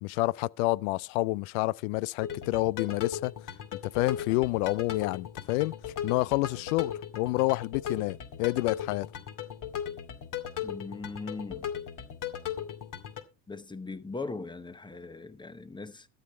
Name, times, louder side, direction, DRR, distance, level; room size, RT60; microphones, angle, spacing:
voice 1, 0.0-3.3 3.8-5.7 6.0-9.1, left 20 dB, 75° left, 0.6 m, -28 dB
sound 1, 2.2-13.2, left 9 dB, 45° left, 2.2 m, -37 dB
voice 2, 10.6-11.7 13.5-16.1, left 3 dB, 10° left, 1.0 m, -39 dB
13.0 x 8.0 x 4.2 m
supercardioid pair, 95°, 43 cm